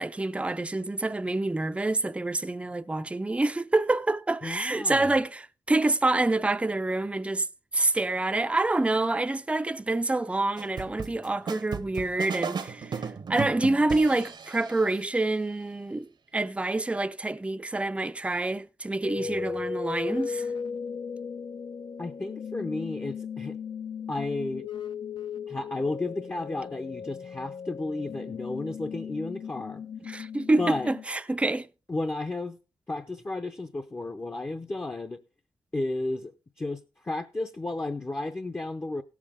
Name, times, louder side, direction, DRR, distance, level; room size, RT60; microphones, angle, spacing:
voice 1, 0.0-7.5 7.7-16.1 16.3-20.5 30.1-31.7, right 2 dB, 15° right, 0.5 m, -27 dB
voice 2, 4.4-5.1 19.2-19.4 22.0-23.6 24.1-24.7 25.5-29.8 30.6-30.9 31.9-32.6 32.9-35.2 35.7-36.3 36.6-39.0, left 2 dB, 25° left, 0.7 m, -33 dB
sound 1, 10.6-14.9, right 5 dB, 60° right, 0.8 m, -35 dB
sound 2, 19.0-31.0, left 6 dB, 70° left, 0.7 m, -37 dB
16.5 x 7.3 x 3.6 m
cardioid pair, 80°, 9 cm